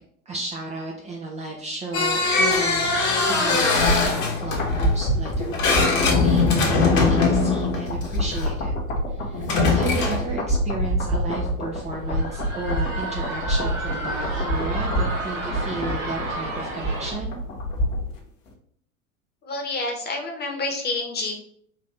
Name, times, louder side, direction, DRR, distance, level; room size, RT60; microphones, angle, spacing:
voice 1, 0.3-2.9 3.3-8.7 9.1-17.4, right 3 dB, 15° right, 0 dB, 0.4 m, -34 dB
sound 1, 1.9-8.5 9.3-10.3, left 4 dB, 45° left, 1.2 m, -21 dB
sound 2, 3.5-18.2 18.5-18.6, equal, 65° left, 1.1 m, -27 dB
sound 3, 11.8-17.1, right 2 dB, 70° right, 1.7 m, -32 dB
voice 2, 19.4-21.3, left 2 dB, 25° left, 2 dB, 1.0 m, -28 dB
4.3 x 2.6 x 3.2 m, 0.63 s
figure-of-eight pair, 75°, 41 cm